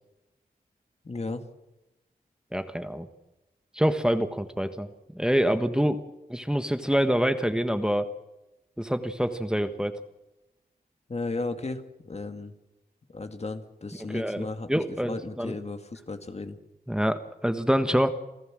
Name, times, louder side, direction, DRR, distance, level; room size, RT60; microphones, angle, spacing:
voice 1, 1.0-1.4 11.1-12.5 13.1-16.6, left 3 dB, 40° left, 7 dB, 2.1 m, -35 dB
voice 2, 2.5-3.1 3.7-6.0 6.3-8.1 8.8-10.0 14.1-15.5 16.9-18.1, equal, 5° right, 8 dB, 1.4 m, -26 dB
28.0 x 15.5 x 7.7 m, 0.97 s
wide cardioid pair, 85°, 16 cm